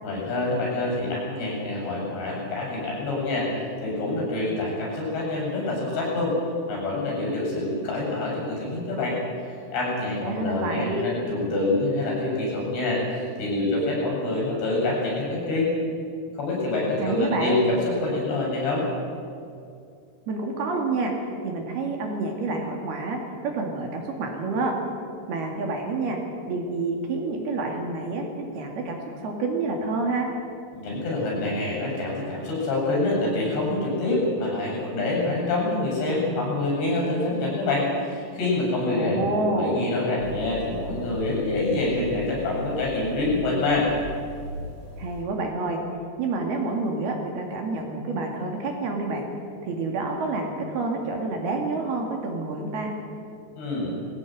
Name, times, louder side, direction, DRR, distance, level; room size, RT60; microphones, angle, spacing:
voice 1, 0.0-6.4 6.7-9.2 9.7-15.7 16.4-18.9 30.7-43.9 53.6-53.9, left 2 dB, 65° left, -2 dB, 9.6 m, -26 dB
voice 2, 10.2-11.1 17.0-17.6 20.3-21.1 21.4-24.7 25.3-26.2 26.5-30.3 38.9-39.8 45.0-45.8 46.2-49.3 49.6-52.9, right 3 dB, 60° right, 2 dB, 4.1 m, -28 dB
sound 1, 40.2-45.2, equal, 20° left, 3.6 m, -38 dB
20.5 x 17.0 x 9.3 m, 2.4 s
omnidirectional pair, 5.3 m